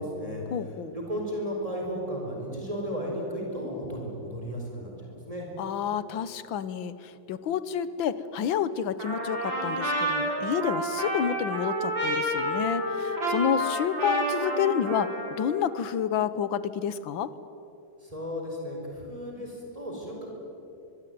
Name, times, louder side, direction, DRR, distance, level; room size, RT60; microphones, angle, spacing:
voice 1, 0.0-0.4 0.9-5.5 18.0-20.3, equal, 15° right, -1 dB, 4.8 m, -34 dB
voice 2, 0.5-1.0 5.6-17.3, left 8 dB, 85° left, 15 dB, 1.8 m, -29 dB
Trumpet, 9.0-15.6, right 1 dB, 80° right, 7.6 m, -29 dB
23.5 x 22.5 x 9.4 m, 2.9 s
omnidirectional pair, 2.1 m